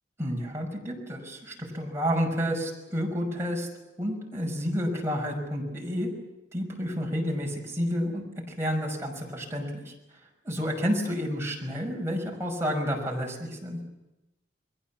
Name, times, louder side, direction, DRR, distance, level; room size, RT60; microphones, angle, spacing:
voice 1, 0.2-3.7 4.0-6.1 6.5-8.2 8.6-9.9 10.4-13.8, equal, 15° right, -1 dB, 5.6 m, -30 dB
29.5 x 21.0 x 7.2 m, 0.99 s
head